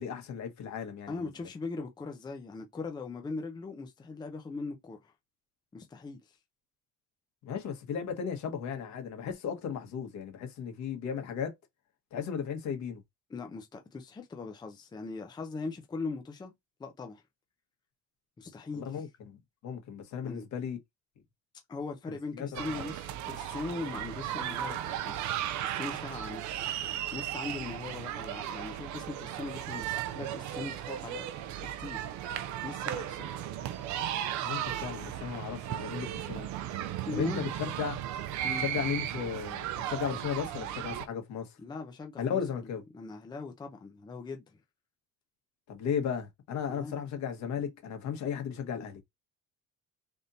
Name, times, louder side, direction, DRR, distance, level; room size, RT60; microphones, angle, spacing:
voice 1, 0.0-1.3 7.4-11.5 12.1-13.0 18.8-20.8 22.4-22.6 34.4-36.5 37.1-37.5 37.8-38.0 38.6-41.5 42.2-42.8 45.7-49.0, left 7 dB, 70° left, 1.5 m, -35 dB
voice 2, 1.1-5.1 5.7-6.4 13.3-16.5 16.8-17.2 18.4-19.1 20.2-20.4 21.7-26.6 27.1-31.3 31.6-32.2 32.6-33.3 37.1-37.6 38.4-38.7 41.6-42.7 42.9-44.6 46.7-47.0, left 3 dB, 15° left, 0.5 m, -40 dB
sound 1, 22.5-41.1, right 11 dB, 75° right, 0.5 m, -36 dB
3.5 x 2.7 x 4.0 m
cardioid pair, 165°, 29 cm